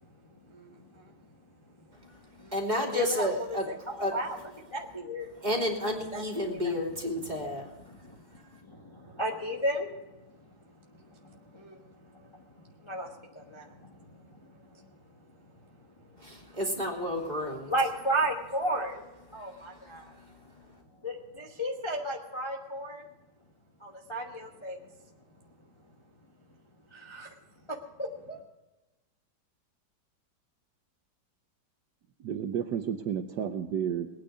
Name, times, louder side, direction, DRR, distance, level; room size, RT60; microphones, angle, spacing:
voice 1, 0.5-1.1 2.4-2.6 2.9-3.6 4.0-4.4 4.7-5.3 6.1-6.7 7.2-7.4 8.0-8.2 8.6-10.5 10.9-14.9 16.1-16.2 17.7-19.0 19.3-20.2 21.0-23.0 23.8-24.9 26.9-27.3 27.7-28.4, right 1 dB, 20° left, 0 dB, 1.0 m, -35 dB
voice 2, 1.9-4.2 5.4-8.6 16.2-17.7 19.4-20.8, left 1 dB, 20° right, -1 dB, 2.8 m, -33 dB
voice 3, 32.2-34.1, right 8 dB, 65° right, 6 dB, 1.3 m, -31 dB
20.5 x 9.4 x 5.0 m, 1.1 s
omnidirectional pair, 2.1 m